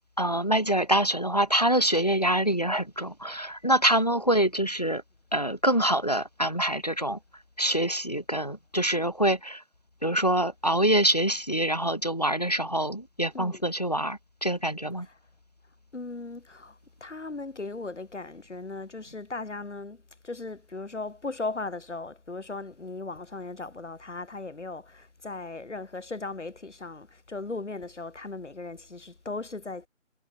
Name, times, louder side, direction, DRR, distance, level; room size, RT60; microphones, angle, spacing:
voice 1, 0.2-5.0 5.3-7.2 7.6-9.6 10.0-15.1, right 1 dB, 30° left, 0.7 m, -25 dB
voice 2, 15.9-29.9, left 3 dB, 60° left, 3.6 m, -37 dB
figure-of-eight pair, 175°, 39 cm